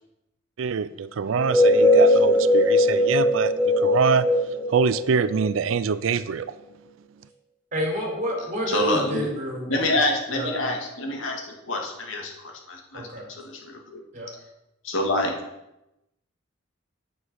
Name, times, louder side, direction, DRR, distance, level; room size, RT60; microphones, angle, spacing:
voice 1, 0.6-4.3 4.7-6.5, right 6 dB, 85° right, 15 dB, 0.4 m, -24 dB
sound 1, 1.3-5.9, left 1 dB, 10° right, 1.8 m, -20 dB
voice 2, 7.7-9.9 10.3-10.7 12.9-13.3 14.1-14.3, equal, 40° right, -1 dB, 4.2 m, -29 dB
voice 3, 8.7-9.3 9.7-13.0 13.3-14.0 14.8-15.4, left 1 dB, 80° left, 1 dB, 2.3 m, -27 dB
9.7 x 8.1 x 6.3 m, 0.90 s
head